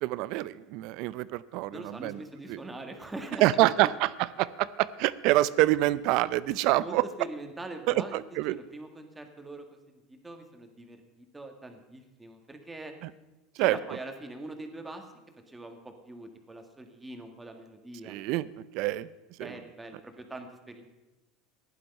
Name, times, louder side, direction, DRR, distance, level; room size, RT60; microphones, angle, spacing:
voice 1, 0.0-2.2 2.5-2.6 3.4-7.0 7.9-8.6 13.0-13.1 13.6-13.8 18.1-18.5 18.7-19.1 19.4-19.5, right 17 dB, 60° right, 18 dB, 0.5 m, -26 dB
voice 2, 1.7-3.9 6.5-9.6 9.9-12.9 13.6-15.0 15.5-18.2 19.4-20.8, right 2 dB, 10° right, 5 dB, 1.8 m, -43 dB
15.0 x 11.0 x 5.4 m, 1.1 s
supercardioid pair, 125°, 0 cm